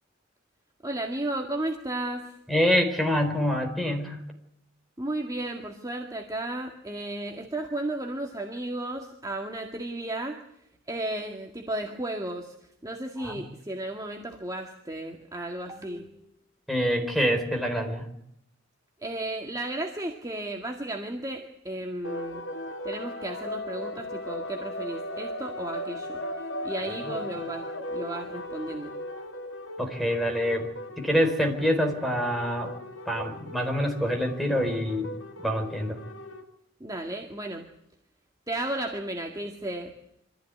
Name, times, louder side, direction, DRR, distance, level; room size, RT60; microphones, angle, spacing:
voice 1, 0.8-2.4 5.0-10.4 10.9-12.5 12.8-16.3 19.0-22.4 22.8-26.2 26.6-27.6 27.9-28.9 36.8-37.6 38.5-39.9, right 1 dB, 20° right, 1 dB, 1.9 m, -34 dB
voice 2, 2.5-4.2 13.2-13.4 16.7-18.1 29.8-30.7 31.0-32.7 33.1-35.1 35.4-36.0, equal, ahead, 1 dB, 4.3 m, -26 dB
sound 1, 22.0-36.4, left 1 dB, 70° left, 2.7 m, -37 dB
25.0 x 15.0 x 9.8 m, 0.76 s
head